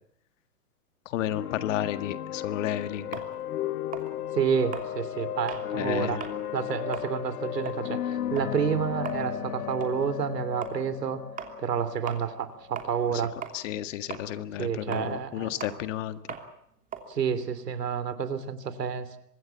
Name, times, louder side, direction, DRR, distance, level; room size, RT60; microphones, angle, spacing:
voice 1, 1.1-3.2 5.8-6.2 13.1-13.2 13.5-16.4, left 12 dB, 50° left, 11 dB, 1.9 m, -32 dB
sound 1, 1.2-12.9, left 11 dB, 65° left, 1.5 m, -35 dB
sound 2, 3.1-5.7 6.1-6.4 6.8-13.2 13.4-18.2, right 7 dB, 15° right, 3.0 m, -41 dB
voice 2, 4.3-6.2 6.5-11.2 11.6-13.3 14.6-15.5 17.1-19.2, right 7 dB, 80° right, 13 dB, 3.2 m, -29 dB
25.0 x 21.0 x 7.2 m, 0.72 s
hypercardioid pair, 130°, 48 cm